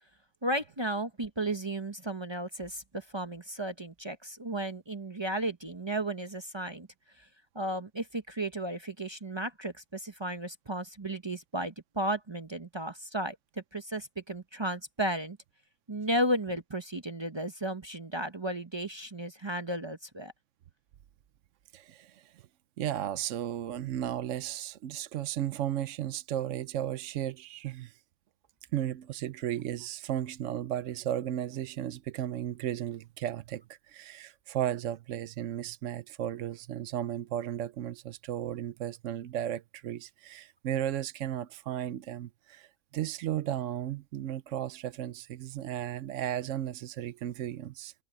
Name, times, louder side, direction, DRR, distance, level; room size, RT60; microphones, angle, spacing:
voice 1, 0.4-6.9 7.2-7.3 7.5-13.4 13.7-15.4 15.9-20.3, right 1 dB, 25° right, 0.8 m, -34 dB
voice 2, 21.7-22.4 22.8-28.0 28.7-47.9, right 11 dB, 75° right, 1.0 m, -35 dB
open air
omnidirectional pair, 1.3 m